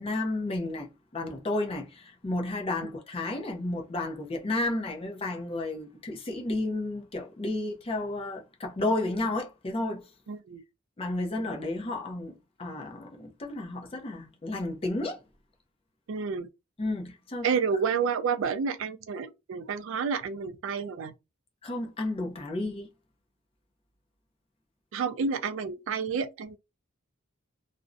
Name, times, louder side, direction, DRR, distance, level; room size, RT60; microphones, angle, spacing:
voice 1, 0.0-10.1 11.0-15.2 16.8-17.5 21.6-22.9, left 2 dB, 25° left, 0.4 m, -32 dB
voice 2, 10.3-10.6 16.1-16.5 17.4-21.1 24.9-26.6, right 6 dB, 65° right, 0.3 m, -30 dB
2.5 x 2.0 x 2.4 m
head